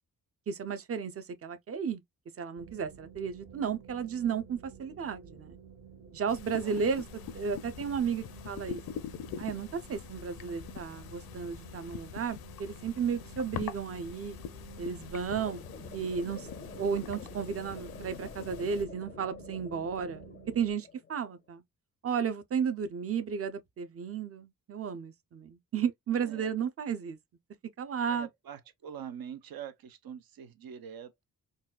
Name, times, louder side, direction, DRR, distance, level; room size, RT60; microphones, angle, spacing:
voice 1, 0.5-2.0 2.4-5.6 6.1-7.0 7.3-8.8 9.4-14.4 14.8-15.6 15.9-20.2 20.5-21.6 22.0-27.2 27.8-28.3, right 6 dB, 40° right, 0.6 m, -33 dB
sound 1, 2.6-20.7, right 7 dB, 65° right, 1.6 m, -52 dB
sound 2, 6.3-18.8, left 9 dB, 90° left, 0.5 m, -44 dB
voice 2, 6.6-7.0 26.1-26.5 28.0-31.2, right 8 dB, 80° right, 0.7 m, -45 dB
sound 3, 15.3-21.3, left 5 dB, 25° left, 0.4 m, -49 dB
4.0 x 2.3 x 2.3 m
cardioid pair, 105°, 35 cm